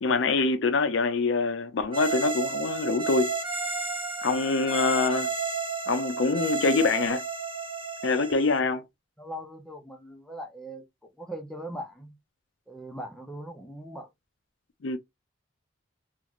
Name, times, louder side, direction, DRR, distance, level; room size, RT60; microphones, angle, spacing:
voice 1, 0.0-3.3 4.2-5.3 5.9-7.2 8.0-8.8 14.8-15.0, left 4 dB, 70° left, 0.5 m, -25 dB
sound 1, 1.9-8.6, right 4 dB, 25° right, 0.9 m, -32 dB
voice 2, 9.2-10.8 11.2-12.2 12.7-14.1, right 1 dB, 5° left, 0.5 m, -40 dB
2.5 x 2.4 x 3.0 m
head